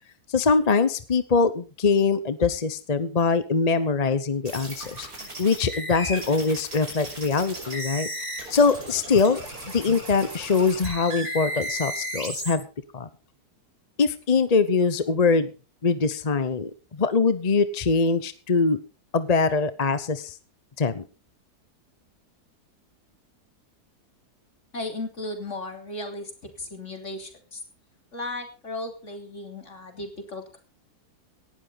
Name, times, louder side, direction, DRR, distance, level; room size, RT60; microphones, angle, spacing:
voice 1, 0.3-5.1 5.4-8.1 8.5-9.4 9.7-12.6 12.9-13.1 14.0-15.5 15.8-18.8 19.1-20.4 20.8-21.0, left 4 dB, 30° left, 13 dB, 0.8 m, -23 dB
sound 1, 4.4-12.5, right 1 dB, 65° right, 6.1 m, -35 dB
voice 2, 24.7-26.3 26.6-27.6 28.1-30.6, left 2 dB, 45° left, 5 dB, 3.6 m, -35 dB
18.0 x 12.0 x 4.0 m, 0.34 s
omnidirectional pair, 1.7 m